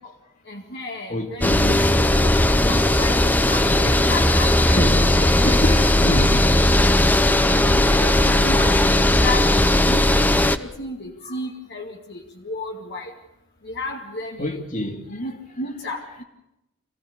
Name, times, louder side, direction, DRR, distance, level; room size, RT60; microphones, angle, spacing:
voice 1, 0.5-2.3 2.6-4.8 5.2-5.6 6.0-6.3 7.6-12.2 12.4-13.1 13.7-14.6 15.1-16.2, left 2 dB, 60° left, 1.9 m, -33 dB
voice 2, 1.1-1.9 3.6-3.9 4.7-6.5 11.2-11.4 14.4-15.3, left 1 dB, 40° left, 2.6 m, -28 dB
sound 1, 1.4-10.6, left 1 dB, 10° left, 0.7 m, -17 dB
27.0 x 16.0 x 6.8 m
head